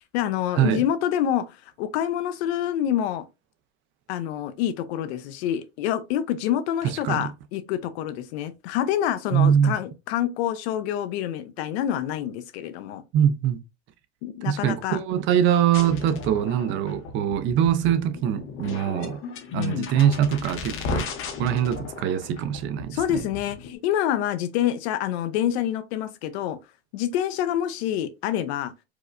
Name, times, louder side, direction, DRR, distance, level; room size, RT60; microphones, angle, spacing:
voice 1, 0.1-3.2 4.1-13.0 14.2-15.0 19.6-19.9 22.9-26.6 26.9-28.7, left 11 dB, 75° left, 0.7 m, -27 dB
voice 2, 6.8-7.3 9.3-9.8 13.1-13.6 14.4-19.2 19.5-21.1 21.4-23.2, right 9 dB, 40° right, 0.5 m, -23 dB
sound 1, 15.7-23.7, left 5 dB, 40° left, 0.8 m, -35 dB
4.7 x 2.1 x 2.4 m
supercardioid pair, 140°, 32 cm